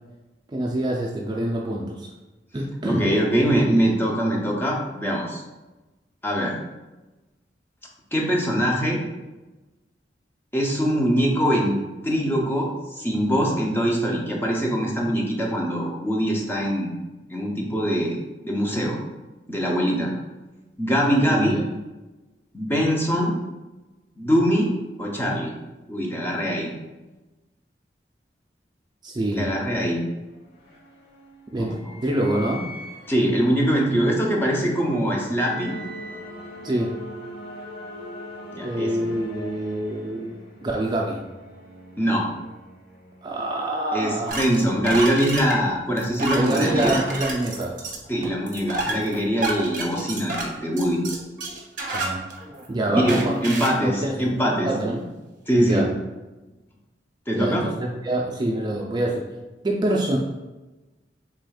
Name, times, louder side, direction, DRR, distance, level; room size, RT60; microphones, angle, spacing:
voice 1, 0.5-2.1 2.5-3.0 21.3-21.6 29.0-29.5 31.5-31.8 32.0-32.7 36.6-37.0 38.6-40.3 40.6-41.2 43.2-44.4 46.3-47.8 51.9-52.2 52.7-53.4 53.8-54.3 54.6-55.0 55.5-55.9 57.3-59.2 59.6-60.2, right 1 dB, 25° right, -1 dB, 0.4 m, -25 dB
voice 2, 2.8-5.4 6.2-6.5 8.1-9.0 10.5-11.8 12.0-16.9 17.3-18.2 18.4-19.0 19.5-20.1 20.8-21.6 22.5-23.3 24.2-24.7 25.0-25.5 25.9-26.7 29.3-30.0 31.6-31.8 33.1-35.7 38.5-39.0 42.0-42.3 43.9-47.0 48.1-51.0 52.9-54.7 55.5-55.9 57.3-57.6, equal, 10° left, -2 dB, 0.7 m, -23 dB
sound 1, 30.1-43.7, left 1 dB, 55° left, 1.3 m, -41 dB
sound 2, 44.3-52.7 53.1-53.8, right 3 dB, 45° right, 0.8 m, -30 dB
4.9 x 3.4 x 2.3 m, 1.1 s
head